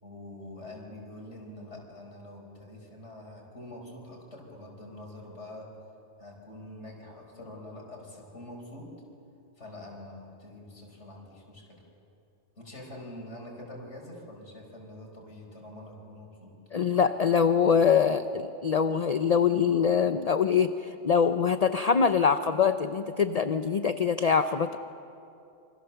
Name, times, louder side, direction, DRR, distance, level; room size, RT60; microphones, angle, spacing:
voice 1, 0.0-5.7 6.2-8.9 9.6-11.8 12.6-16.5, left 1 dB, 75° left, 0 dB, 5.0 m, -45 dB
voice 2, 16.7-20.7 21.0-24.8, left 6 dB, 40° left, 10 dB, 0.6 m, -24 dB
28.0 x 26.0 x 7.0 m, 2.7 s
omnidirectional pair, 1.2 m